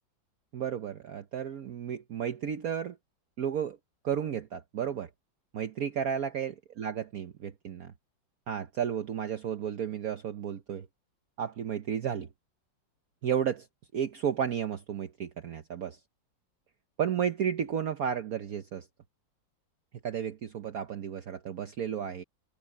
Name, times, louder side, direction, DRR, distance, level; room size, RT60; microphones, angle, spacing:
voice 1, 0.5-3.0 3.4-3.8 4.0-5.1 5.5-7.9 8.5-10.9 11.4-12.3 13.2-13.7 13.9-16.0 17.0-18.9 20.0-22.2, right 8 dB, 55° right, 1.2 m, -33 dB
omnidirectional pair, 2.0 m